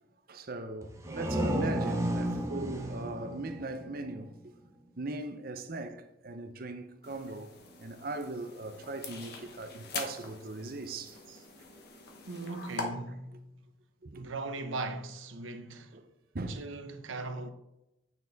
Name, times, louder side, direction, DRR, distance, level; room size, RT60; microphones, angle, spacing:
voice 1, 0.3-4.5 5.0-7.5 7.8-11.2 14.0-14.2 15.9-16.1 16.3-16.6, right 2 dB, 45° right, 0.6 m, -39 dB
sound 1, 0.8-4.4, right 1 dB, 15° right, 0.9 m, -33 dB
sound 2, 7.0-12.8, left 4 dB, 50° left, 1.1 m, -44 dB
voice 2, 12.3-13.5 14.1-16.0 16.5-17.5, right 2 dB, 80° right, 0.8 m, -39 dB
8.9 x 4.2 x 4.0 m
head